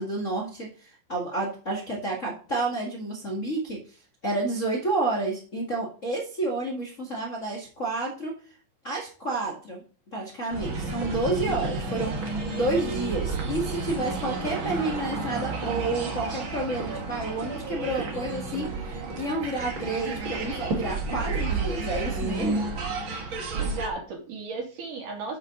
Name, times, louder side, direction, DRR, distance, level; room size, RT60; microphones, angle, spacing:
voice 1, 0.0-8.3 8.8-9.8 10.1-22.6, right 2 dB, 30° left, -2 dB, 1.6 m, -30 dB
sound 1, 10.5-23.9, right 3 dB, 45° right, 2.1 m, -31 dB
voice 2, 23.5-25.4, right 3 dB, 70° right, 0 dB, 4.2 m, -35 dB
8.2 x 7.8 x 3.8 m, 0.39 s
omnidirectional pair, 3.9 m